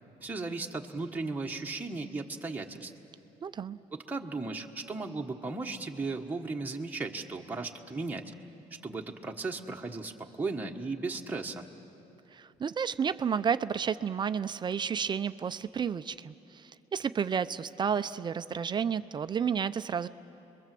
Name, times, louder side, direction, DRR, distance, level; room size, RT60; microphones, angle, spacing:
voice 1, 0.2-2.9 3.9-8.3 8.8-11.7, right 3 dB, 10° right, 1 dB, 1.3 m, -36 dB
voice 2, 3.4-3.8 12.3-20.1, right 7 dB, 35° right, 12 dB, 0.5 m, -31 dB
29.0 x 22.5 x 7.6 m, 2.9 s
cardioid pair, 130°, 14 cm